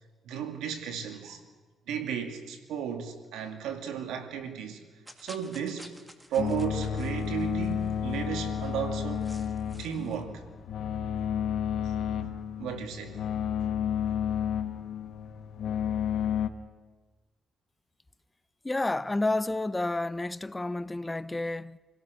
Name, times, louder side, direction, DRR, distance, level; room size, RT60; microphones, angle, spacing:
voice 1, 0.3-1.4 1.9-4.8 5.2-5.9 6.3-9.3 9.8-10.4 11.8-11.9 12.6-13.2, right 8 dB, 85° right, 2.4 m, -34 dB
sound 1, 5.1-10.2, equal, 10° right, 2.1 m, -53 dB
sound 2, 6.4-16.5, left 8 dB, 70° left, 1.2 m, -31 dB
voice 2, 18.6-21.8, left 2 dB, 15° left, 0.6 m, -30 dB
27.0 x 17.0 x 6.4 m
cardioid pair, 90°, 0 cm